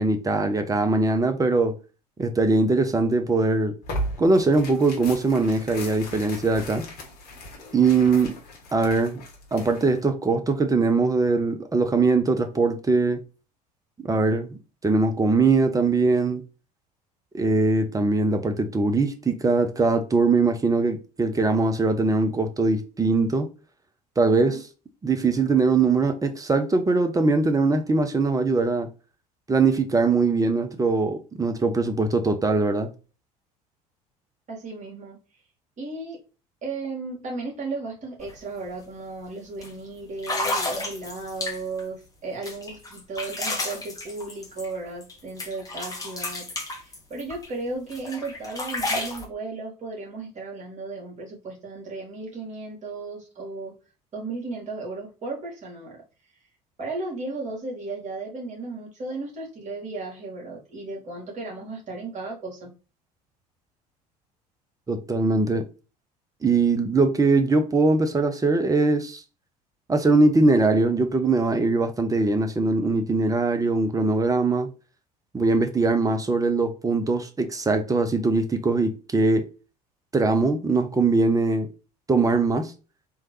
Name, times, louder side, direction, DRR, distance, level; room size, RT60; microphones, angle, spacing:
voice 1, 0.0-1.7 2.2-3.7 4.2-6.8 7.7-8.3 8.7-9.2 9.5-13.2 14.0-16.4 17.3-23.5 24.2-24.6 25.0-28.9 29.5-32.9 64.9-65.7 66.4-69.2 69.9-74.7 75.3-79.5 80.1-81.7 82.1-82.7, right 3 dB, 15° right, 0.7 m, -21 dB
Tearing, 3.8-10.0, equal, 50° left, 1.4 m, -37 dB
voice 2, 7.6-8.1 24.3-24.6 34.5-35.2 35.8-36.2 36.6-46.5 46.7-53.7 54.1-56.0 56.8-62.7, right 3 dB, 35° right, 2.1 m, -35 dB
sound 1, 38.2-38.3 38.7-39.0 39.6-39.7 40.2-41.8 42.4-45.1 45.4-47.5 47.9-49.3, left 2 dB, 15° left, 1.3 m, -31 dB
3.6 x 3.1 x 3.0 m
figure-of-eight pair, 65°, 20 cm